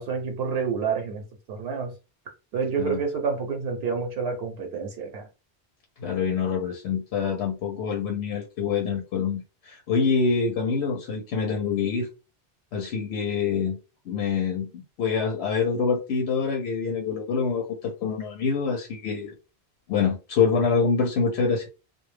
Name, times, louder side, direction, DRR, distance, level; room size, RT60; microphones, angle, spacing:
voice 1, 0.0-1.9 2.5-5.3, right 5 dB, 75° right, 0.8 m, -28 dB
voice 2, 6.0-12.1 12.7-13.8 14.1-19.3 19.9-21.6, left 5 dB, 90° left, 0.9 m, -26 dB
2.2 x 2.0 x 3.1 m
omnidirectional pair, 1.1 m